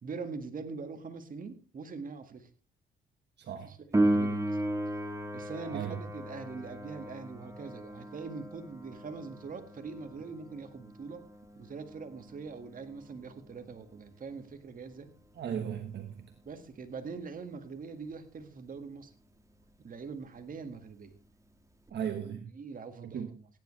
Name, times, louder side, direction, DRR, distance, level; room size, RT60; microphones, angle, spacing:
voice 1, 0.0-2.5 3.6-4.6 5.3-11.3 11.6-15.1 16.5-19.1 19.8-21.2 22.3-23.5, right 4 dB, 45° right, 7 dB, 1.9 m, -43 dB
voice 2, 3.4-3.8 5.7-6.0 15.3-16.3 21.9-22.5 23.0-23.3, right 8 dB, 60° right, 6 dB, 1.4 m, -37 dB
Piano, 3.9-14.3 21.9-22.0, right 1 dB, 15° right, 1.6 m, -35 dB
16.0 x 10.0 x 3.3 m, 0.34 s
cardioid pair, 90°, 20 cm